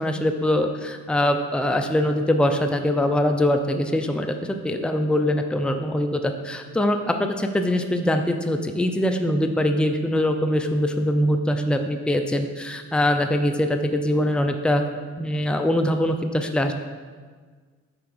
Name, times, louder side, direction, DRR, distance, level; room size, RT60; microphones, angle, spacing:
voice 1, 0.0-14.8 15.2-16.7, left 1 dB, 5° left, 5 dB, 0.7 m, -23 dB
8.7 x 4.7 x 6.1 m, 1.5 s
cardioid pair, 90°, 30 cm